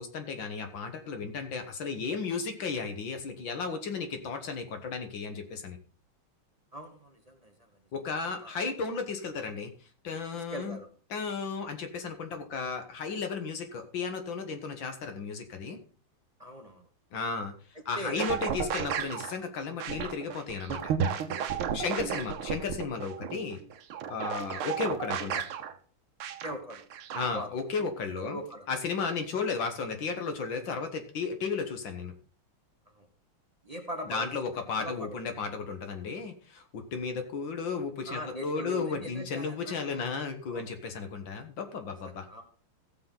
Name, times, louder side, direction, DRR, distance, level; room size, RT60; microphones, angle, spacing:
voice 1, 0.0-5.8 7.9-9.7 10.0-10.8 11.1-15.8 17.1-17.5 17.9-20.9 21.7-23.6 24.1-25.4 27.1-28.4 28.7-32.1 34.1-42.3, left 5 dB, 65° left, 6 dB, 2.0 m, -34 dB
voice 2, 6.7-7.7 8.3-8.5 10.3-10.9 16.4-16.9 17.7-18.2 21.3-22.1 24.3-24.5 26.4-26.8 27.3-27.5 27.8-27.9 28.2-28.7 32.9-33.1 33.6-35.2 38.1-40.0 40.5-40.7 42.0-42.4, equal, 20° right, 3 dB, 1.1 m, -41 dB
sound 1, 18.2-19.3 19.8-25.7 26.2-27.3, right 7 dB, 90° right, 1.8 m, -33 dB
15.5 x 6.8 x 3.9 m, 0.39 s
omnidirectional pair, 2.3 m